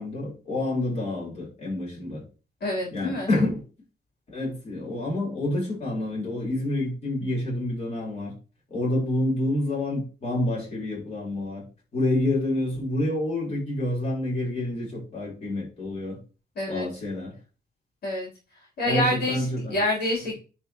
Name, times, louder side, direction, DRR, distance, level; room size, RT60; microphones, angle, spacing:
voice 1, 0.0-2.2 2.9-3.6 4.3-8.3 8.7-11.6 11.9-16.2 16.7-17.3 18.8-19.8, left 1 dB, 40° left, 4.3 m, -28 dB
voice 2, 2.6-3.3 16.6-16.9 18.0-18.3 18.8-20.3, left 1 dB, 65° left, 3.8 m, -27 dB
10.5 x 4.8 x 3.1 m
wide cardioid pair, 140°, 17 cm